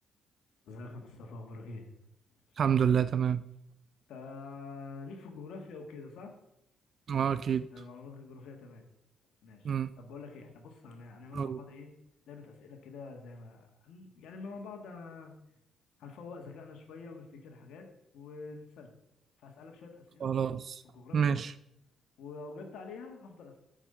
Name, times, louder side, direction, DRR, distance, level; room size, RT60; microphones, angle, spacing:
voice 1, 0.6-1.9 2.5-2.6 4.1-6.3 7.7-8.9 9.4-11.9 12.3-15.3 16.0-17.9 18.1-18.9 19.4-20.3 20.8-21.4 22.2-23.6, left 4 dB, 80° left, 1.5 m, -46 dB
voice 2, 2.6-3.4 7.1-7.7 9.6-9.9 11.3-11.6 20.2-20.8 21.1-21.5, right 8 dB, 55° right, 0.3 m, -28 dB
7.4 x 5.2 x 6.7 m
cardioid pair, 90°, 0 cm